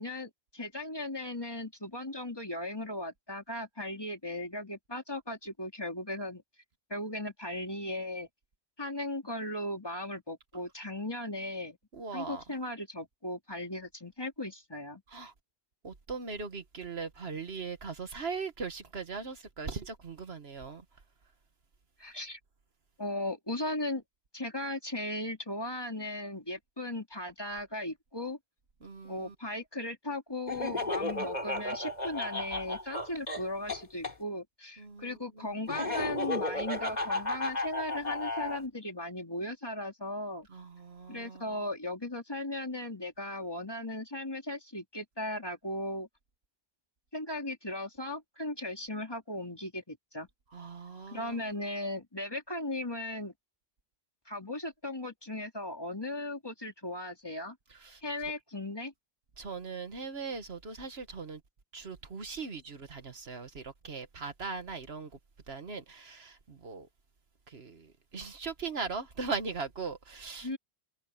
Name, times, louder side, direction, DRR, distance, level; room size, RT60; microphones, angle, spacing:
voice 1, 0.0-6.4 6.9-8.3 8.8-11.8 12.1-15.0 22.0-22.4 23.0-24.0 24.3-28.4 29.0-40.5 41.1-46.1 47.1-50.3 51.1-53.3 54.3-57.6 58.0-58.9 70.4-70.6, left 1 dB, 20° left, 3.0 m, -37 dB
voice 2, 11.9-12.4 15.1-15.3 15.8-20.8 28.8-29.3 34.8-35.6 40.5-41.7 50.5-51.5 57.7-58.0 59.4-61.4 61.7-65.1 65.5-66.9 67.5-70.6, right 4 dB, 70° right, 1.7 m, -40 dB
Laughter, 30.5-34.1 35.7-38.6, left 2 dB, 40° left, 4.1 m, -33 dB
omnidirectional pair, 1.1 m